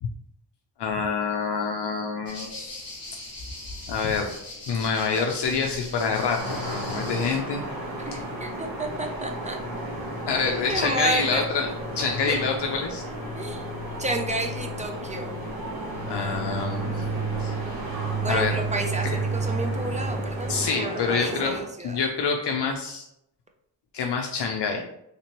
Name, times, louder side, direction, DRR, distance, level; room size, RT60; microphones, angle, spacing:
voice 1, 0.8-2.9 3.9-4.4 4.7-7.6 10.3-11.7 12.0-13.0 16.1-17.1 17.4-17.5 18.3-18.6 19.0-19.2 20.5-21.6 21.8-23.1 23.9-24.8, left 5 dB, 65° left, 2 dB, 0.5 m, -27 dB
sound 1, 2.3-7.4, left 1 dB, 35° left, 1.3 m, -40 dB
sound 2, 5.4-20.7, right 2 dB, 5° left, 1.1 m, -34 dB
sound 3, 6.4-21.6, right 1 dB, 50° right, 1.1 m, -35 dB
voice 2, 8.0-9.6 10.5-11.4 12.3-12.4 13.1-13.7 14.0-15.4 18.2-22.0, right 2 dB, 15° right, 3 dB, 0.4 m, -31 dB
3.3 x 2.8 x 2.9 m, 0.78 s
wide cardioid pair, 95°, 44 cm